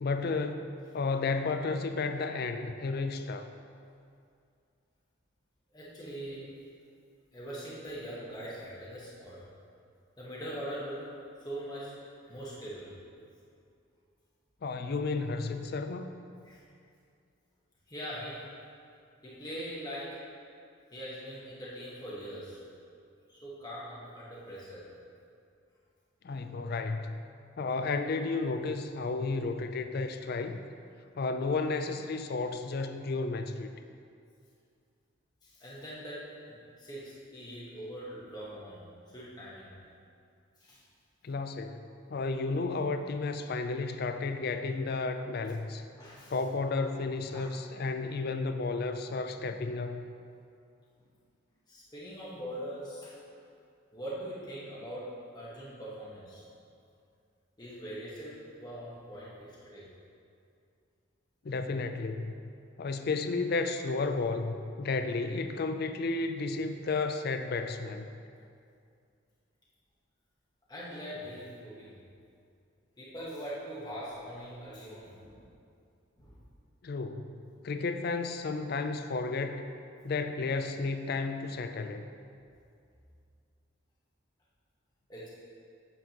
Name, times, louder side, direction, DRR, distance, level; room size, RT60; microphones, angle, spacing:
voice 1, 0.0-3.5 14.6-16.1 26.2-27.2 27.6-30.6 31.2-33.7 41.2-41.8 42.1-45.8 46.3-50.1 61.4-62.3 62.8-68.1 76.8-77.4 77.6-79.7 80.0-82.0, left 3 dB, 50° left, 8 dB, 0.4 m, -32 dB
voice 2, 5.7-6.5 7.3-9.5 10.2-11.1 11.4-12.0 12.2-12.9 16.4-16.6 17.9-18.5 19.2-20.2 20.9-22.6 23.3-24.9 35.4-39.7 40.6-40.8 46.0-46.4 47.3-47.5 51.7-53.2 53.9-56.4 57.6-59.9 70.7-71.9 73.0-75.4 76.2-76.4 85.1-85.3, equal, 20° left, -8 dB, 1.2 m, -42 dB
8.2 x 7.2 x 2.9 m, 2.4 s
head